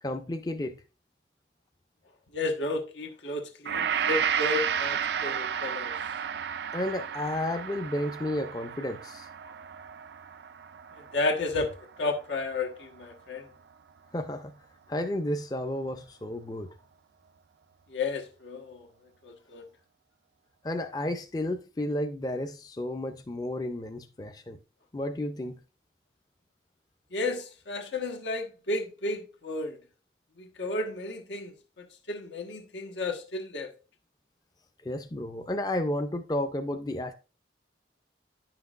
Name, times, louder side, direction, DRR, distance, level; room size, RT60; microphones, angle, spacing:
voice 1, 0.0-0.8 6.7-9.5 14.1-14.5 14.9-16.7 20.6-24.6 24.9-25.6 34.8-37.1, left 1 dB, 20° left, 0.4 m, -32 dB
voice 2, 2.3-5.9 11.1-13.4 17.9-18.9 19.2-19.6 27.1-29.8 30.4-33.7, left 2 dB, 90° left, 1.2 m, -32 dB
Gong, 3.7-12.1 12.4-12.6, right 8 dB, 70° right, 0.4 m, -32 dB
9.9 x 5.9 x 2.4 m
head